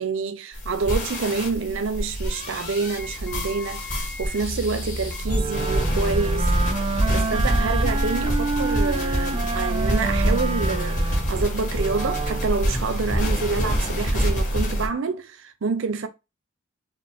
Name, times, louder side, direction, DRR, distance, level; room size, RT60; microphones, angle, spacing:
voice 1, 0.0-6.6 7.1-16.1, right 4 dB, 70° right, 0.6 m, -27 dB
sound 1, 0.5-14.9, equal, 35° left, 1.6 m, -25 dB
Wind instrument woodwind instrument, 5.2-12.6, right 4 dB, 25° right, 0.3 m, -29 dB
4.3 x 2.9 x 3.5 m
head